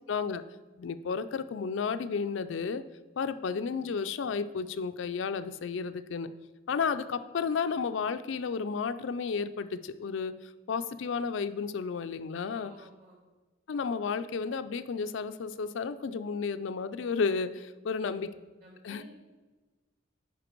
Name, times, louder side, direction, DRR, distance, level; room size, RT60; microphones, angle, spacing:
voice 1, 0.1-0.4 0.8-2.8 3.2-6.3 6.7-10.3 10.7-12.7 13.7-18.3 18.8-19.0, left 5 dB, 75° left, 11 dB, 0.4 m, -32 dB
voice 2, 12.5-13.2 17.9-18.3 18.6-19.0, equal, 50° right, -3 dB, 2.9 m, -52 dB
10.0 x 4.6 x 4.5 m, 1.2 s
head